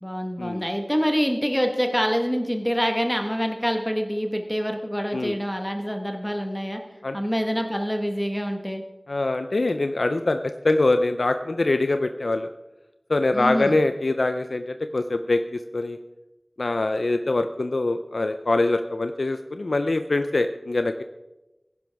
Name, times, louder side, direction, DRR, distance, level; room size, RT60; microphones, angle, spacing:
voice 1, 0.0-6.8 7.1-8.8 13.3-13.8, equal, 5° left, 4 dB, 1.3 m, -26 dB
voice 2, 9.1-12.5 13.1-16.0 16.6-21.0, left 2 dB, 85° left, 8 dB, 0.4 m, -24 dB
15.5 x 11.0 x 3.5 m, 1.0 s
wide cardioid pair, 50°, 0 cm